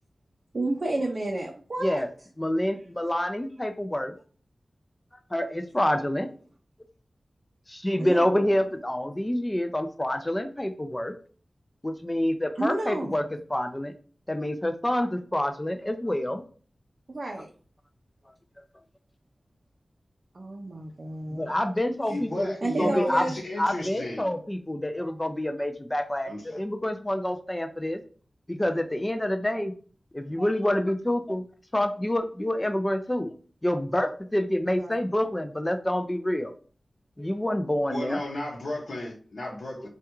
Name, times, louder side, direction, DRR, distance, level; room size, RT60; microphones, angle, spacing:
voice 1, 0.5-2.0 8.0-8.5 12.6-13.3 17.1-17.5 20.3-21.5 22.6-23.4 34.7-35.0, right 2 dB, 50° right, 0 dB, 0.5 m, -31 dB
voice 2, 2.4-4.1 5.3-6.3 7.7-11.2 11.8-13.2 13.5-13.9 14.3-16.4 21.3-22.5 22.8-23.3 23.6-28.0 28.5-29.7 30.1-31.4 31.7-33.3 33.6-36.5 37.2-38.2, left 1 dB, 15° left, 8 dB, 0.4 m, -27 dB
voice 3, 22.1-24.3 26.3-26.6 37.9-39.9, left 1 dB, 75° left, -1 dB, 0.8 m, -34 dB
3.3 x 2.3 x 2.9 m, 0.41 s
wide cardioid pair, 95°, 0 cm